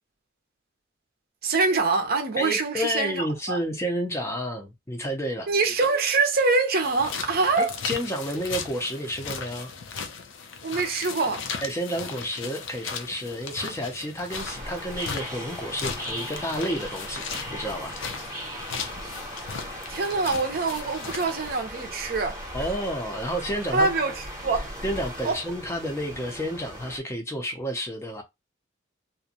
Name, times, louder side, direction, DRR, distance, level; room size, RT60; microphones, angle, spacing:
voice 1, 1.4-3.6 5.5-7.7 10.6-11.5 19.9-22.4 23.7-24.7 25.2-25.4, right 3 dB, 50° right, 0.6 m, -24 dB
voice 2, 2.4-5.5 7.6-9.7 11.6-17.2 17.5-18.0 22.5-23.9 24.8-28.2, equal, 15° left, 0.5 m, -30 dB
sound 1, 6.8-21.6, left 5 dB, 75° left, 0.5 m, -37 dB
sound 2, 14.3-27.0, equal, 15° right, 0.8 m, -38 dB
2.5 x 2.2 x 2.7 m
head